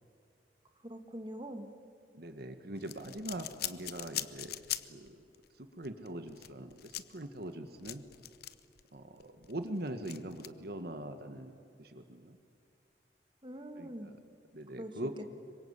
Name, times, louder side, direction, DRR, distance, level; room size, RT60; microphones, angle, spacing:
voice 1, 0.8-1.7 13.4-14.1 14.8-14.9 15.2-15.3, right 1 dB, 30° right, 6 dB, 1.9 m, -43 dB
voice 2, 2.1-5.2 5.5-8.0 8.9-11.5 11.8-12.4 13.8-14.2 14.5-15.2, right 1 dB, 60° right, 8 dB, 1.6 m, -42 dB
sound 1, 2.8-5.1 5.3-5.5 5.8-8.8 9.2-10.5, left 13 dB, 60° left, 0.9 m, -41 dB
26.5 x 24.0 x 8.2 m, 2.4 s
head